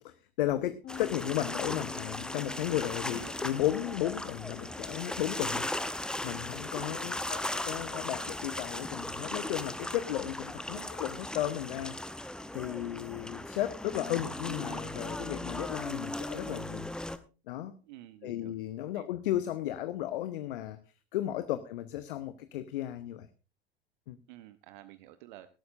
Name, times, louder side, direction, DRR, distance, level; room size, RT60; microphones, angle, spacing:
voice 1, 0.0-12.0 12.5-16.9 17.5-17.7 18.2-20.8 21.1-23.3 24.1-24.2, left 13 dB, 60° left, 13 dB, 0.8 m, -34 dB
sound 1, 0.8-10.3, left 15 dB, 40° left, 3.8 m, -51 dB
sound 2, 0.9-17.2, left 1 dB, 5° left, 0.7 m, -38 dB
voice 2, 6.8-7.4 10.7-10.9 17.8-18.5 18.9-19.1 21.5-21.6 24.3-25.5, right 15 dB, 50° right, 12 dB, 0.8 m, -51 dB
18.0 x 12.5 x 2.5 m, 0.33 s
figure-of-eight pair, 75°, 30 cm